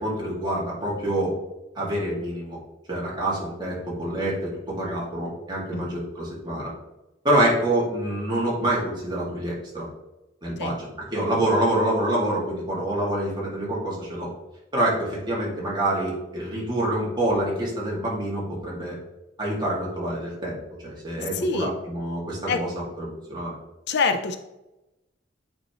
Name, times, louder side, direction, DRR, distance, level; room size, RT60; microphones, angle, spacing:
voice 1, 0.0-1.3 1.7-2.6 2.9-6.7 7.2-9.9 10.4-14.3 14.7-19.0 19.4-20.6 20.8-22.7 23.0-23.5, right 1 dB, 25° right, -5 dB, 2.1 m, -26 dB
voice 2, 21.3-21.7 22.5-22.6 23.9-24.4, left 4 dB, 60° left, 8 dB, 0.5 m, -25 dB
8.6 x 4.2 x 3.0 m, 0.99 s
head